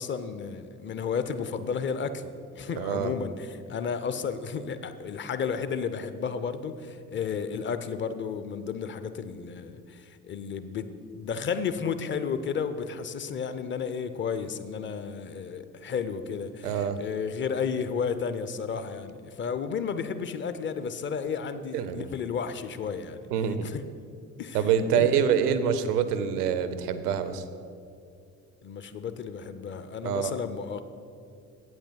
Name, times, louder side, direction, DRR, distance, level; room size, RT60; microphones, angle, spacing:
voice 1, 0.0-23.3 23.6-23.8 24.4-24.6 24.9-25.1 28.6-30.8, left 6 dB, 25° left, 11 dB, 0.5 m, -32 dB
voice 2, 2.8-3.1 16.6-17.0 21.7-22.1 23.3-23.7 24.5-27.4 30.0-30.4, right 8 dB, 75° right, 12 dB, 0.6 m, -26 dB
8.3 x 6.1 x 5.8 m, 2.4 s
figure-of-eight pair, 45°, 46 cm